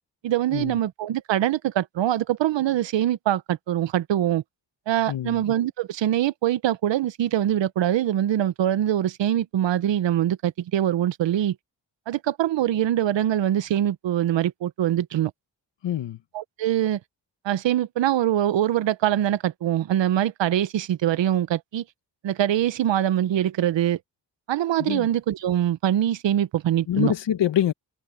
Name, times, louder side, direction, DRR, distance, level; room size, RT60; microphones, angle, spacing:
voice 1, 0.2-4.4 4.9-11.5 12.1-15.3 16.3-17.0 17.4-21.8 22.2-24.0 24.5-27.1, right 11 dB, 80° right, 0.9 m, -23 dB
voice 2, 5.1-5.4 15.8-16.2 24.8-25.1 26.9-27.7, left 10 dB, 80° left, 1.5 m, -25 dB
cardioid pair, 70°, 43 cm